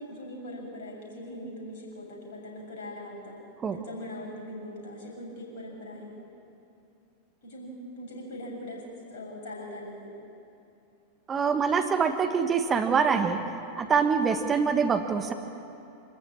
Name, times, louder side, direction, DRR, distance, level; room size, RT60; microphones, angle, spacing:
voice 1, 0.0-3.4 3.7-6.1 7.4-8.8 9.1-10.1 14.5-14.7, left 1 dB, 55° left, -2 dB, 7.5 m, -41 dB
voice 2, 11.3-13.4 13.8-15.3, right 6 dB, 20° right, 6 dB, 1.2 m, -25 dB
26.5 x 14.5 x 8.9 m, 2.8 s
figure-of-eight pair, 90°, 0 cm